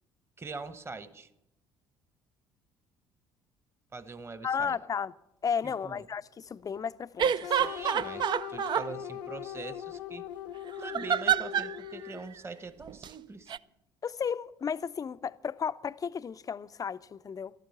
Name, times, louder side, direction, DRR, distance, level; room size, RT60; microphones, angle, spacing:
voice 1, 0.4-1.3 3.9-4.8 5.6-6.0 7.5-10.3 10.8-13.5, right 4 dB, 20° right, 1.2 m, -43 dB
voice 2, 4.4-5.1 5.4-7.7 14.0-17.5, left 7 dB, 30° left, 0.5 m, -34 dB
sound 1, 7.2-8.9 10.8-11.8 12.9-13.1 13.5-13.6, right 8 dB, 40° right, 0.4 m, -28 dB
sound 2, 7.4-12.4, left 10 dB, 70° left, 0.7 m, -40 dB
13.0 x 12.5 x 7.0 m
figure-of-eight pair, 50°, 12 cm